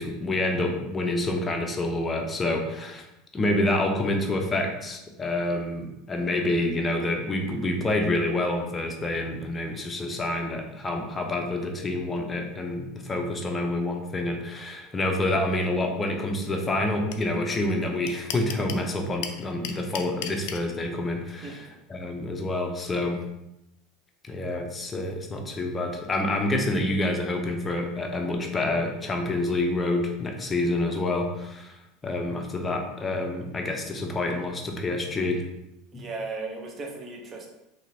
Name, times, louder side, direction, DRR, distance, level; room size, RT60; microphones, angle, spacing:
voice 1, 0.0-3.1 3.3-23.2 24.2-35.4 35.9-36.0, left 2 dB, 20° left, 3 dB, 0.6 m, -28 dB
sound 1, 17.1-17.2 17.5-17.6 17.8-18.8 19.2-20.6, left 9 dB, 65° left, 0.3 m, -33 dB
voice 2, 35.9-37.5, right 3 dB, 35° right, 1 dB, 0.7 m, -36 dB
2.9 x 2.6 x 2.7 m, 0.89 s
hypercardioid pair, 85°, 0 cm